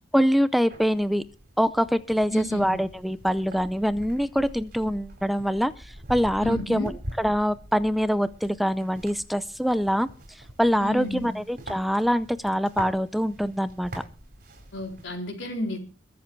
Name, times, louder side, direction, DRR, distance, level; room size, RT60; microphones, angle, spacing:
voice 1, 0.1-1.2 1.6-5.7 6.1-6.9 7.2-10.1 10.6-13.9, equal, ahead, 14 dB, 0.6 m, -24 dB
sound 1, 0.7-15.1, right 1 dB, 50° right, 5.0 m, -43 dB
voice 2, 2.3-2.8 6.4-7.0 10.8-11.4 14.7-15.8, left 1 dB, 75° left, 3 dB, 4.0 m, -31 dB
22.0 x 7.6 x 4.6 m, 0.36 s
head